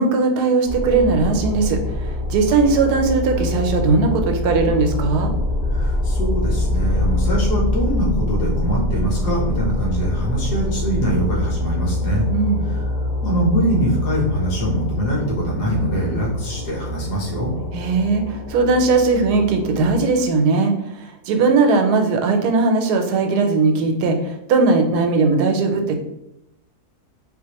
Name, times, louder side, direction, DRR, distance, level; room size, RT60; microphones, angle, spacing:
voice 1, 0.0-5.3 12.3-12.7 17.7-26.0, right 3 dB, 85° right, 4 dB, 1.1 m, -18 dB
sound 1, 0.6-20.0, left 1 dB, 55° left, 0.6 m, -24 dB
voice 2, 5.7-12.3 12.7-12.8 13.2-17.5, right 1 dB, 80° left, -3 dB, 1.6 m, -23 dB
4.0 x 2.5 x 2.8 m, 0.83 s
omnidirectional pair, 1.7 m